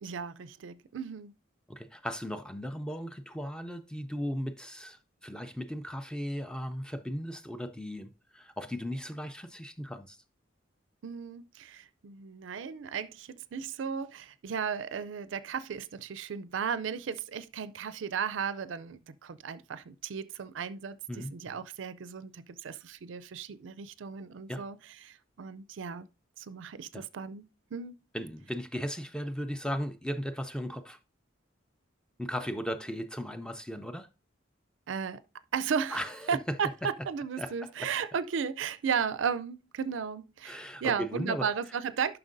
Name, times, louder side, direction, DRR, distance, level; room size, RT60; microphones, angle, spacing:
voice 1, 0.0-1.3 11.0-24.8 25.0-26.1 26.4-27.4 27.7-28.0 34.9-35.2 35.5-42.2, right 6 dB, 70° right, 0.4 m, -35 dB
voice 2, 1.7-10.2 21.1-21.3 24.5-24.6 26.9-27.1 28.1-31.0 32.2-34.1 35.9-36.6 37.4-37.9 40.4-41.5, equal, 5° left, 0.4 m, -37 dB
11.0 x 5.8 x 2.6 m
head